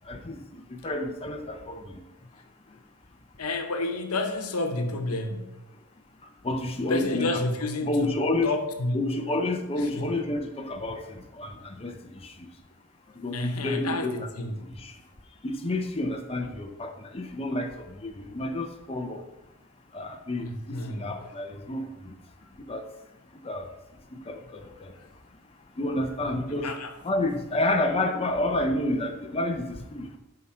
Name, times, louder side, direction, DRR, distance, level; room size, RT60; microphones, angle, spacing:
voice 1, 0.1-2.0 6.4-7.4 7.8-8.5 8.9-12.3 13.2-14.3 14.8-14.9 15.4-19.2 19.9-22.1 22.7-22.9 23.4-23.7 24.1-24.9 25.8-26.7 27.0-30.2, left 2 dB, 25° left, 4 dB, 0.6 m, -30 dB
voice 2, 3.4-5.6 6.9-8.2 8.4-9.1 9.8-10.2 13.3-14.6 16.4-16.5 20.4-21.3 25.0-25.1 26.6-27.0, left 2 dB, 80° left, 6 dB, 1.1 m, -30 dB
9.6 x 5.6 x 4.4 m, 0.96 s
head